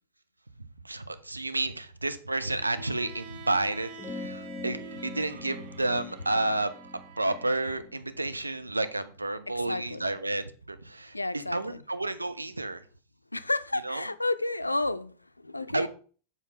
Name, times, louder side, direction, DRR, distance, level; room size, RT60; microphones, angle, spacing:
voice 1, 0.6-6.7 7.2-12.8 13.8-14.1 15.7-15.9, right 2 dB, 80° right, 0.6 m, -31 dB
Bowed string instrument, 2.5-7.7, right 4 dB, 45° right, 1.1 m, -47 dB
sound 1, 4.0-8.8, left 3 dB, 25° left, 0.7 m, -43 dB
voice 2, 9.7-10.0 11.1-11.8 13.3-15.9, left 2 dB, 85° left, 0.4 m, -31 dB
7.1 x 4.1 x 5.5 m
figure-of-eight pair, 90°, 0 cm